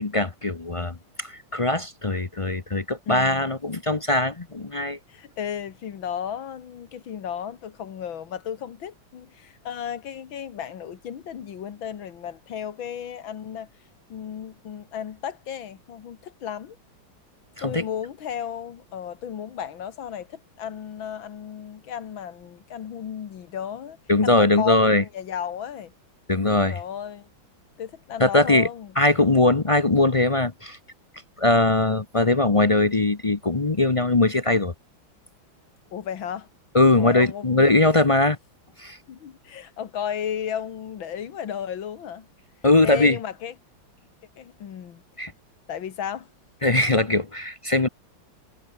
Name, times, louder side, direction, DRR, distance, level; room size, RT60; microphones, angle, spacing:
voice 1, 0.0-5.0 17.6-17.9 24.1-25.0 26.3-26.8 28.2-28.7 29.0-30.8 31.4-34.7 36.7-38.4 38.8-39.0 42.6-43.2 45.2-45.3 46.6-47.9, left 2 dB, 35° left, 0.5 m, -21 dB
voice 2, 3.1-3.5 5.1-13.7 14.1-16.8 17.6-24.0 24.2-25.9 26.7-27.3 27.8-28.9 35.9-36.5 37.0-37.7 39.1-42.3 42.8-43.5 44.4-45.0 45.7-46.3, left 9 dB, 85° left, 2.3 m, -34 dB
omnidirectional pair, 2.1 m